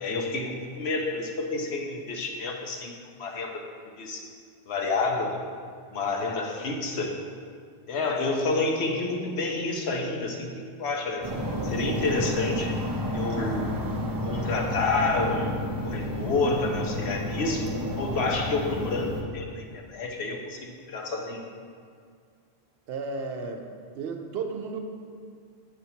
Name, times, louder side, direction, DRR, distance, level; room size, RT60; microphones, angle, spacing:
voice 1, 0.0-3.6 4.0-4.2 4.7-5.4 5.9-7.2 7.9-11.3 11.6-12.8 13.1-13.7 14.2-15.6 15.8-17.7 18.0-21.4, left 3 dB, 80° left, 1 dB, 1.0 m, -29 dB
sound 1, 11.2-19.2, left 1 dB, 30° right, 0.4 m, -31 dB
voice 2, 22.9-23.7 23.9-24.8, right 4 dB, 70° right, 4 dB, 0.8 m, -33 dB
7.0 x 5.7 x 2.7 m, 2.1 s
omnidirectional pair, 1.1 m